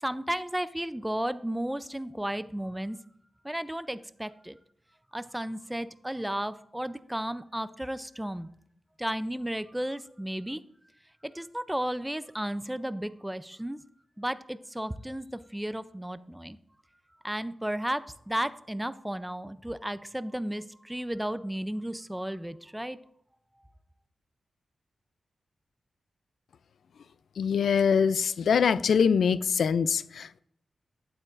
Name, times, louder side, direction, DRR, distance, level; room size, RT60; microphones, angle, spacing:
voice 1, 0.0-3.0 3.4-4.6 5.1-8.5 9.0-10.6 11.2-13.8 14.2-16.6 17.2-23.0, right 1 dB, 5° right, 0.4 m, -33 dB
voice 2, 27.4-30.4, left 6 dB, 85° left, 0.3 m, -24 dB
12.0 x 8.9 x 2.5 m
wide cardioid pair, 110°, 0 cm